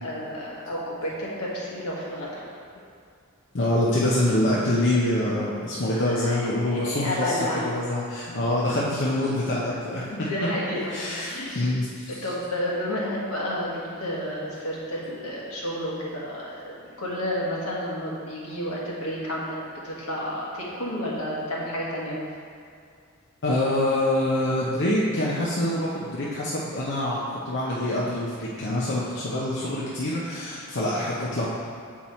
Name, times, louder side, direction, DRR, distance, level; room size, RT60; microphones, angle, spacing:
voice 1, 0.0-2.4 6.0-6.4 6.7-7.7 10.1-11.7 12.1-19.6 19.8-22.2, equal, 80° left, -5 dB, 1.5 m, -31 dB
voice 2, 3.5-10.0 10.9-12.3 23.4-31.5, left 1 dB, 55° left, -6 dB, 0.8 m, -25 dB
7.1 x 4.5 x 4.3 m, 2.3 s
head